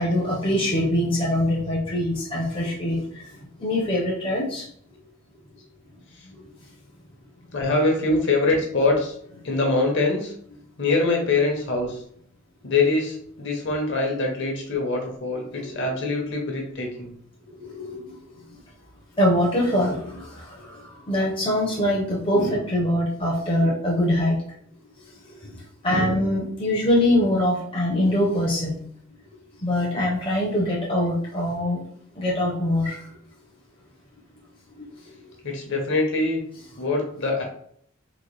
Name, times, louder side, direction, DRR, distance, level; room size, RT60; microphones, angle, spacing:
voice 1, 0.0-3.0 3.6-4.6 15.6-15.9 17.5-18.0 19.2-24.4 25.5-25.6 25.8-28.7 29.6-31.8 32.2-33.0, left 1 dB, 25° left, -4 dB, 0.6 m, -23 dB
voice 2, 7.5-9.1 9.4-10.3 10.8-12.0 12.6-17.1 35.4-36.4 36.8-37.4, left 3 dB, 55° left, 1 dB, 0.8 m, -23 dB
3.8 x 2.1 x 3.2 m, 0.64 s
head